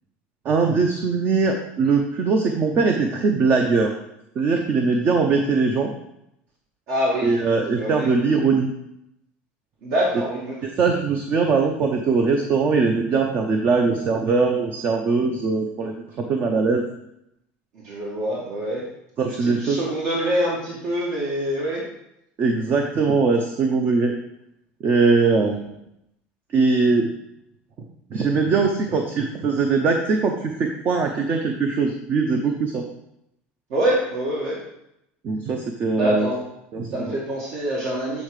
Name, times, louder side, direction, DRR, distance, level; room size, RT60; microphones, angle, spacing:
voice 1, 0.4-3.9 4.4-5.9 7.2-8.7 10.8-16.8 19.2-19.8 22.4-24.1 24.8-25.6 26.5-27.1 28.1-32.8 35.2-36.3 36.7-37.1, right 4 dB, 35° right, 3 dB, 0.7 m, -21 dB
voice 2, 6.9-7.3 7.8-8.1 9.8-10.5 17.7-18.8 19.2-21.8 25.3-25.5 33.7-34.6 35.9-36.4 36.9-38.2, right 1 dB, 60° right, -5 dB, 1.8 m, -25 dB
8.4 x 3.7 x 4.9 m, 0.82 s
cardioid pair, 140°, 5 cm